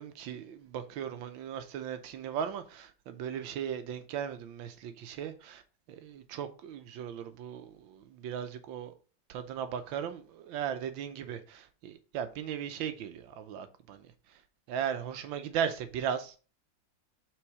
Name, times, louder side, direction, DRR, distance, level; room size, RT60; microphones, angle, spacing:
voice 1, 0.0-5.6 5.9-8.9 9.3-14.4 14.7-16.3, right 8 dB, 85° right, 1.5 m, -37 dB
6.1 x 3.9 x 4.7 m
omnidirectional pair, 2.1 m